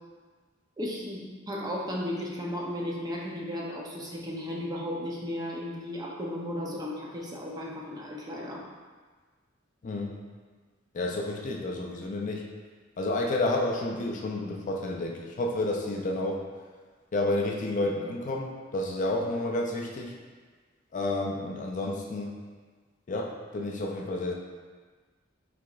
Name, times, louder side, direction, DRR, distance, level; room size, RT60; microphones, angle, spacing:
voice 1, 0.8-8.6, left 1 dB, 20° right, -3 dB, 0.6 m, -35 dB
voice 2, 9.8-10.2 10.9-12.4 13.0-16.4 17.1-20.1 20.9-22.4 23.1-24.3, left 2 dB, 40° left, 0 dB, 0.4 m, -30 dB
4.7 x 4.0 x 2.4 m, 1.5 s
head